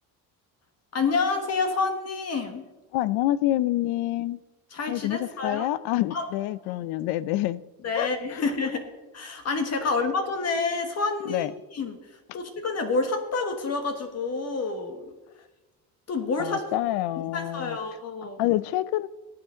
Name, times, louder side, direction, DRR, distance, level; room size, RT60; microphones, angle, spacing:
voice 1, 0.9-2.6 4.7-5.7 6.1-6.3 7.8-8.8 9.1-11.5 11.7-12.0 12.3-15.0 16.1-16.6 17.2-18.4, left 4 dB, 40° left, 1.5 m, -28 dB
voice 2, 2.9-4.4 4.9-7.6 7.9-8.4 9.8-9.9 11.3-11.5 16.4-17.8 18.4-19.1, left 15 dB, 85° left, 0.6 m, -27 dB
17.0 x 8.7 x 3.8 m
cardioid pair, 125°, 37 cm